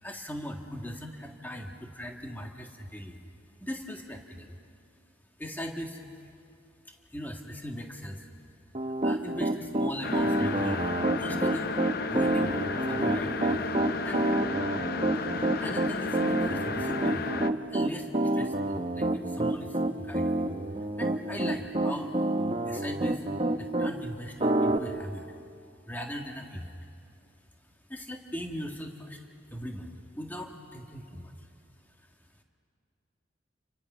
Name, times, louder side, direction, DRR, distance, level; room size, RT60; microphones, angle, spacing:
voice 1, 0.0-3.2 3.6-4.5 5.4-6.0 7.1-8.3 9.0-10.9 11.2-11.7 12.1-12.6 12.9-13.7 14.0-14.3 15.4-17.3 17.7-20.4 21.0-22.1 22.6-23.2 23.6-25.3 25.8-26.8 27.9-29.2 29.5-31.3, equal, 10° left, 2 dB, 1.8 m, -39 dB
Piano, 8.7-23.9 24.4-24.8, right 1 dB, 30° right, 0.9 m, -28 dB
sound 1, 10.0-17.5, left 4 dB, 50° left, 0.7 m, -33 dB
29.5 x 24.0 x 6.2 m, 2.5 s
head